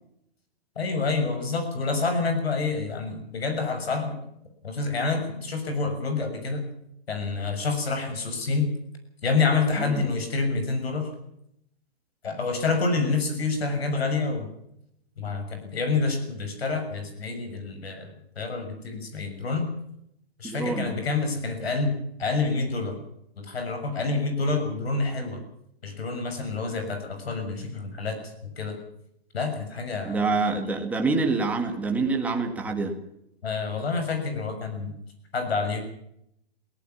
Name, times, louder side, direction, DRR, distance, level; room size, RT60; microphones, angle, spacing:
voice 1, 0.7-4.2 4.6-6.7 7.1-8.7 9.2-11.1 12.2-14.5 15.2-18.1 18.3-19.7 20.4-23.0 23.4-25.4 25.8-28.8 29.3-30.3 33.4-34.9 35.3-35.8, left 4 dB, 75° left, 6 dB, 6.7 m, -28 dB
voice 2, 20.4-20.9 30.0-33.0, right 3 dB, 5° right, 3 dB, 1.7 m, -26 dB
20.5 x 18.0 x 7.1 m, 0.77 s
hypercardioid pair, 165°, 31 cm